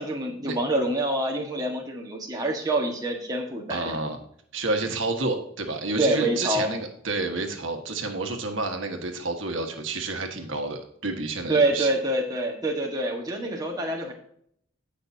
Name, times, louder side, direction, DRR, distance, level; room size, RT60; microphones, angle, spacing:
voice 1, 0.0-3.9 6.0-6.7 11.5-14.1, right 1 dB, 20° right, 0 dB, 1.5 m, -26 dB
voice 2, 3.7-4.2 4.5-11.9, right 3 dB, 70° right, 4 dB, 1.6 m, -30 dB
17.5 x 5.8 x 2.8 m, 0.66 s
head